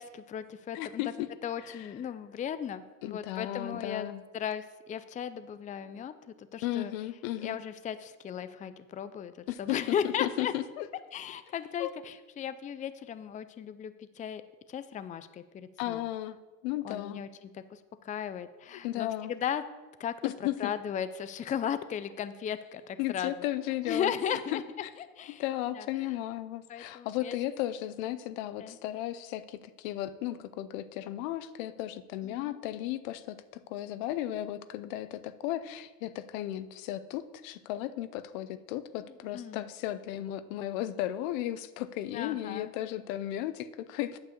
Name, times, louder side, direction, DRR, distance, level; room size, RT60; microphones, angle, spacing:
voice 1, 0.0-1.0 1.4-4.1 4.3-6.9 7.4-10.5 11.1-14.4 14.7-16.1 16.8-17.3 17.5-17.8 18.0-19.6 20.0-20.1 20.4-23.3 23.9-24.6 25.2-25.4 25.7-26.1 26.7-27.4 28.6-28.8 32.2-32.6 39.3-39.6 42.1-42.7, left 8 dB, 20° left, 13 dB, 0.4 m, -36 dB
voice 2, 0.7-1.3 1.6-1.9 3.0-4.2 6.6-7.6 9.5-9.8 10.0-10.9 11.8-11.9 15.8-16.4 16.6-17.2 18.8-19.3 20.2-20.7 23.0-24.1 24.5-24.6 25.3-44.2, left 13 dB, 90° left, 13 dB, 0.6 m, -35 dB
8.6 x 4.8 x 7.1 m, 1.2 s
supercardioid pair, 105°, 39 cm